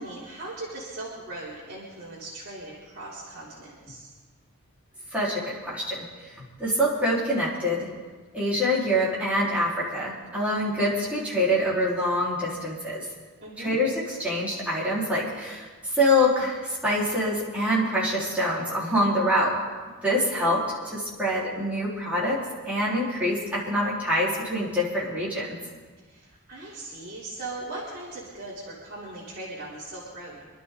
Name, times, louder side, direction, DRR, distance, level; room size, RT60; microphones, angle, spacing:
voice 1, 0.0-4.1 13.4-13.7 20.4-20.6 26.0-30.5, right 2 dB, 45° right, -10 dB, 3.7 m, -39 dB
voice 2, 5.1-6.0 6.4-7.9 8.3-13.0 13.6-19.5 20.0-20.6 20.9-22.4 22.7-25.6, equal, 5° right, -9 dB, 4.5 m, -25 dB
26.5 x 12.0 x 4.0 m, 1.4 s
head